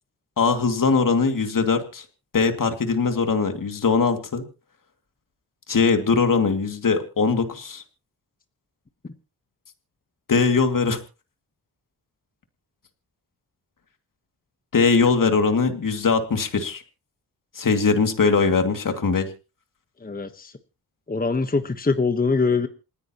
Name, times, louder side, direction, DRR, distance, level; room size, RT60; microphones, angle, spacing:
voice 1, 0.4-2.0 2.3-4.4 5.7-7.8 10.3-11.0 14.7-16.8 17.5-19.3, left 4 dB, 50° left, 6 dB, 2.4 m, -21 dB
voice 2, 20.0-20.5 21.1-22.7, left 4 dB, 20° left, 8 dB, 1.2 m, -23 dB
28.5 x 9.8 x 3.0 m, 0.33 s
cardioid pair, 65°, 41 cm